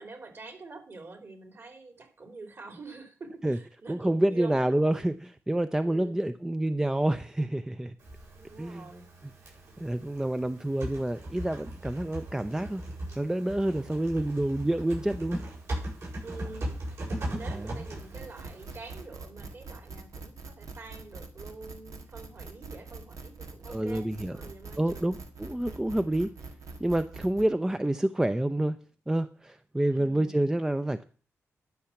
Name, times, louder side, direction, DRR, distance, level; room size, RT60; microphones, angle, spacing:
voice 1, 0.0-4.8 5.8-6.3 8.3-9.1 16.2-16.8 17.2-25.2 29.9-30.4, right 3 dB, 50° right, 3.2 m, -46 dB
voice 2, 3.9-7.9 8.6-8.9 9.8-12.8 13.2-15.4 17.5-17.8 23.7-24.5 24.8-26.3 26.8-31.0, right 1 dB, 10° right, 0.6 m, -28 dB
Typing, 8.0-19.0, right 1 dB, 70° right, 7.1 m, -39 dB
sound 1, 18.0-27.5, right 3 dB, 90° right, 1.6 m, -44 dB
11.5 x 5.7 x 7.1 m
cardioid pair, 75°, 5 cm